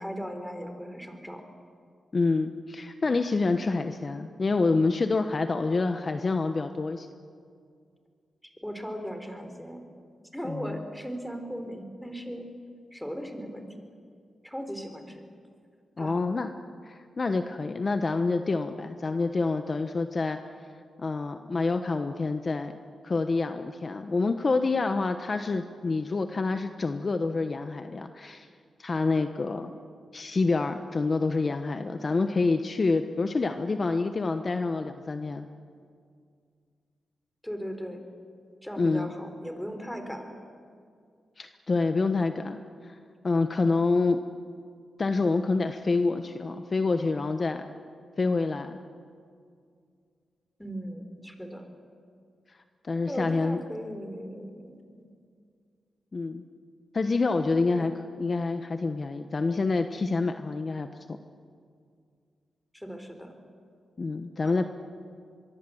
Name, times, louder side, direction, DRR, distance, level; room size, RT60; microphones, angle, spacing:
voice 1, 0.0-1.4 8.4-9.9 10.3-12.5 12.9-13.7 14.4-15.2 16.0-16.2 37.4-38.0 38.6-40.4 50.6-51.7 53.1-55.1 57.7-57.9 62.7-63.3 64.4-64.7, equal, 5° left, 6 dB, 3.8 m, -38 dB
voice 2, 2.1-7.1 10.5-10.8 16.0-16.5 16.8-20.4 21.0-22.7 23.0-28.5 28.8-29.7 30.1-35.5 38.8-39.1 41.4-43.0 43.2-44.2 45.0-47.7 48.2-48.8 52.9-53.6 56.1-56.4 56.9-57.9 58.2-60.9 64.0-64.6, left 3 dB, 40° left, 8 dB, 1.1 m, -27 dB
25.0 x 22.5 x 7.9 m, 2.2 s
cardioid pair, 75°, 0 cm